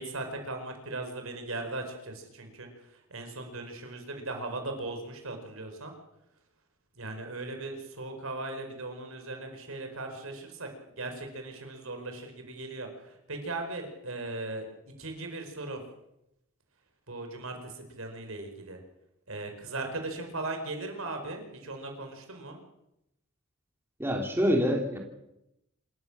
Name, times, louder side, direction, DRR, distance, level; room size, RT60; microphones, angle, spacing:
voice 1, 0.0-5.9 7.0-10.7 10.9-14.7 15.0-15.8 17.1-18.8 19.3-22.6, right 2 dB, 70° right, 5 dB, 4.9 m, -38 dB
voice 2, 24.0-25.0, equal, 10° right, 1 dB, 2.9 m, -26 dB
27.0 x 14.0 x 7.3 m, 0.86 s
head